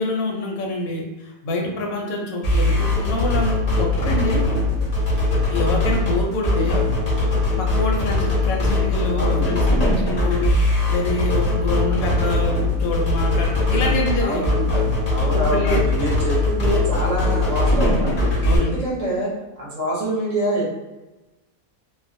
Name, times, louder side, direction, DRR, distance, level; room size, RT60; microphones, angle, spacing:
voice 1, 0.0-4.5 5.5-6.8 7.6-10.5 10.9-12.5 12.8-14.5 15.3-15.9 18.4-18.8, left 2 dB, 75° left, 0 dB, 1.0 m, -26 dB
sound 1, 2.4-18.6, left 2 dB, 50° left, 0.5 m, -20 dB
voice 2, 9.1-9.6 13.7-13.9 14.2-14.4 15.1-20.7, right 1 dB, 40° right, -6 dB, 0.6 m, -26 dB
2.5 x 2.1 x 2.5 m, 1.1 s
omnidirectional pair, 1.5 m